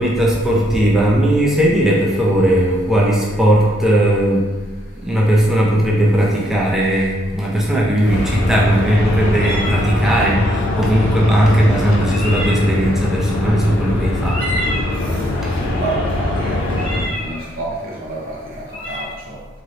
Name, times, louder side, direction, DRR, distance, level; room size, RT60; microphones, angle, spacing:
voice 1, 0.0-4.5 4.9-14.6 15.4-15.5, right 1 dB, ahead, -4 dB, 0.5 m, -17 dB
sound 1, 1.6-19.0, equal, 60° left, 1.2 m, -32 dB
sound 2, 8.0-17.0, left 2 dB, 80° left, 0.5 m, -22 dB
sound 3, 8.1-16.9, left 1 dB, 25° left, 0.9 m, -33 dB
voice 2, 14.9-19.5, right 2 dB, 45° right, -4 dB, 0.7 m, -30 dB
3.8 x 3.2 x 2.8 m, 1.3 s
head